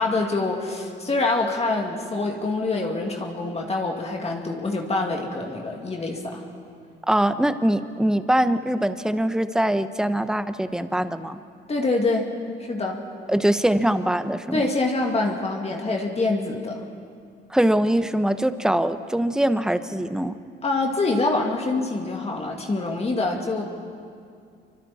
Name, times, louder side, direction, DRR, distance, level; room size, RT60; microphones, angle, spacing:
voice 1, 0.0-6.4 11.7-12.3 12.6-13.0 14.5-16.8 20.6-23.6, left 3 dB, 30° left, 1 dB, 2.3 m, -25 dB
voice 2, 7.1-11.4 13.3-14.6 17.5-20.3, right 1 dB, 5° right, 10 dB, 0.9 m, -22 dB
27.0 x 24.0 x 4.3 m, 2.4 s
cardioid pair, 90°, 20 cm